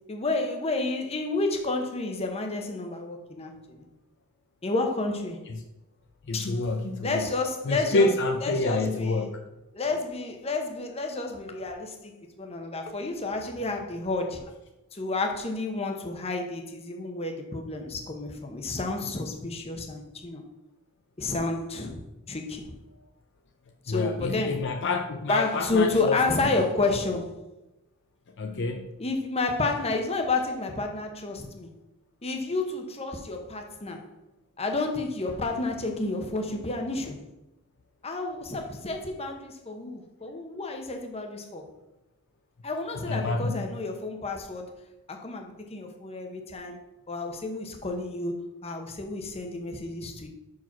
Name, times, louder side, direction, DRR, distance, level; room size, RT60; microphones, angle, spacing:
voice 1, 0.1-3.8 4.6-5.4 6.3-6.6 7.0-8.1 8.4-9.3 9.7-12.1 12.4-14.5 14.9-20.4 21.2-22.7 23.8-24.6 25.3-27.4 29.0-31.7 32.2-34.0 34.6-37.2 38.0-41.7 42.6-44.8 45.1-46.8 47.1-50.3, left 3 dB, 25° left, 3 dB, 0.9 m, -30 dB
voice 2, 6.3-7.3 7.7-9.4 23.9-26.2 26.6-26.7 28.4-28.9 43.0-43.7, left 3 dB, 55° left, 5 dB, 0.5 m, -28 dB
6.0 x 4.8 x 5.9 m, 0.95 s
head